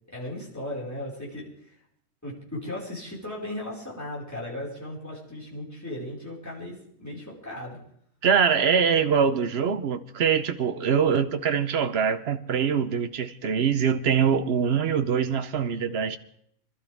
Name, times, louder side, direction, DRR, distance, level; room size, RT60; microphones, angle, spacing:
voice 1, 0.1-1.8 2.2-7.8, left 1 dB, 10° left, 5.0 m, -36 dB
voice 2, 8.2-16.2, right 7 dB, 50° right, 0.9 m, -23 dB
25.0 x 12.5 x 3.5 m
omnidirectional pair, 1.6 m